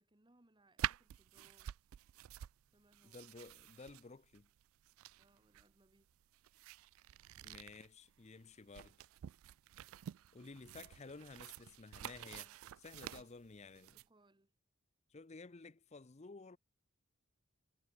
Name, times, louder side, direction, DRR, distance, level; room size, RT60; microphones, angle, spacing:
voice 1, 0.0-1.7 2.7-3.2 5.2-6.1 13.7-14.5, right 2 dB, 20° right, 1.2 m, -71 dB
sound 1, 0.8-14.1, right 11 dB, 70° right, 0.3 m, -48 dB
sound 2, 2.2-10.9, equal, 10° left, 7.6 m, -92 dB
voice 2, 3.0-4.5 7.4-9.1 10.3-14.0 15.1-16.6, left 3 dB, 30° left, 0.6 m, -54 dB
head